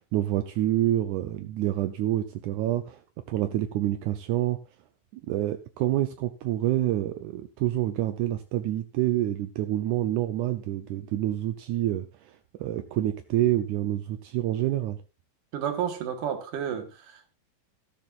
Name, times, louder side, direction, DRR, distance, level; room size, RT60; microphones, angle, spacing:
voice 1, 0.1-3.0 3.3-4.6 5.1-15.0, right 13 dB, 85° right, 1.7 m, -27 dB
voice 2, 15.5-17.3, right 8 dB, 65° right, 2.8 m, -31 dB
13.5 x 13.0 x 2.5 m
omnidirectional pair, 4.3 m